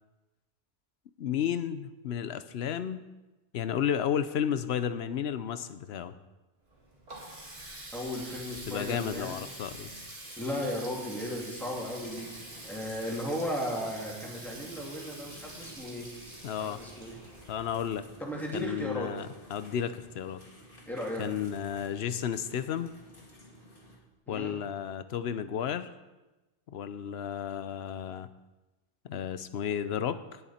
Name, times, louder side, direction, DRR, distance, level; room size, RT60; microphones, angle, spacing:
voice 1, 1.2-3.0 3.5-6.2 8.7-9.9 16.4-16.8 17.5-18.0 18.5-20.4 21.2-22.9 24.3-25.9 26.7-28.3 29.0-30.4, left 9 dB, 65° left, 12 dB, 0.9 m, -32 dB
Water tap faucet, 6.6-18.3, right 1 dB, 60° right, 2.8 m, -46 dB
voice 2, 7.9-9.4 10.4-12.3 12.6-16.1 16.6-17.2 18.2-19.1 20.9-21.2 24.3-24.5, equal, ahead, -3 dB, 2.6 m, -35 dB
sound 1, 11.7-24.0, equal, 50° left, 2.4 m, -54 dB
18.0 x 7.0 x 4.3 m, 1.1 s
omnidirectional pair, 1.2 m